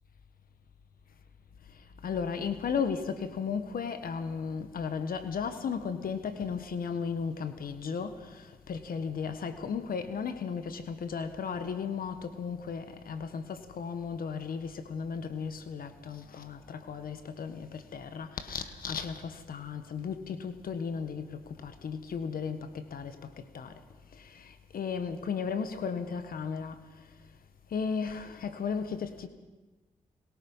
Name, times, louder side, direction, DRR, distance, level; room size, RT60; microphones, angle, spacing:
voice 1, 1.7-23.8 24.1-27.0 27.7-29.3, left 6 dB, 75° left, 1.5 m, -35 dB
22.0 x 21.5 x 5.6 m
supercardioid pair, 45°, 15 cm